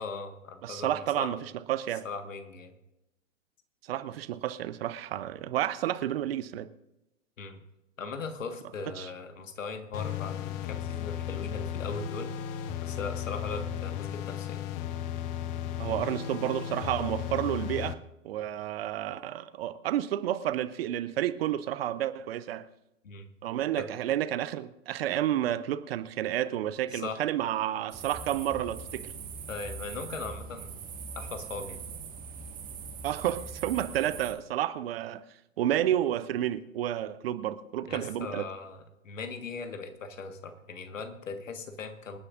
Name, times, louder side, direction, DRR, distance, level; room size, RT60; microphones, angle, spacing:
voice 1, 0.0-1.3 2.0-2.7 7.4-7.6 8.0-12.3 12.8-14.6 23.0-23.3 23.8-23.9 26.9-27.2 29.5-30.8 31.1-31.8 37.9-42.2, left 4 dB, 70° left, 1.7 m, -39 dB
voice 2, 0.6-1.4 1.7-2.0 3.9-6.7 9.0-9.1 15.8-18.0 18.2-22.6 23.4-29.1 33.0-35.2 35.6-38.5, right 12 dB, 50° right, 0.7 m, -30 dB
sound 1, 9.9-17.9, left 10 dB, 20° left, 0.4 m, -35 dB
sound 2, 27.9-34.3, right 5 dB, 20° right, 1.6 m, -41 dB
26.5 x 9.7 x 2.6 m
figure-of-eight pair, 105°, 40 cm